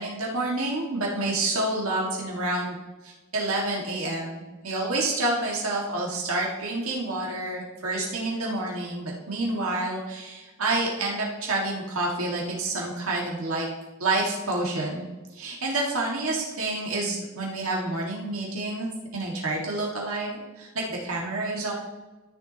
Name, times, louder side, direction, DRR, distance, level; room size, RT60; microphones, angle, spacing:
voice 1, 0.0-2.8 3.0-13.7 14.0-15.1 15.4-18.9 19.1-21.7, right 2 dB, 70° right, -2 dB, 1.9 m, -28 dB
13.5 x 6.9 x 2.9 m, 1.2 s
head